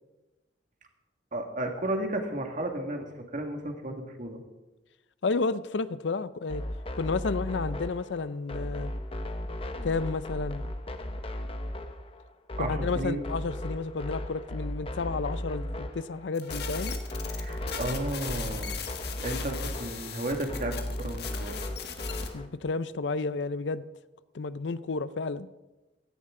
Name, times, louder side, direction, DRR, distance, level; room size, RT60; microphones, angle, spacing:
voice 1, 1.3-3.1 3.3-4.4 12.6-13.2 17.3-18.7 19.2-21.6, right 1 dB, 45° right, 3 dB, 1.9 m, -33 dB
voice 2, 5.2-6.6 7.0-8.9 9.8-10.6 12.6-16.9 22.3-23.8 24.3-25.5, left 4 dB, 90° left, 15 dB, 0.6 m, -31 dB
sound 1, 6.5-22.5, left 1 dB, 30° left, 0.9 m, -36 dB
sound 2, 16.3-22.3, left 6 dB, 65° left, 1.5 m, -39 dB
16.5 x 14.0 x 3.8 m, 1.1 s
head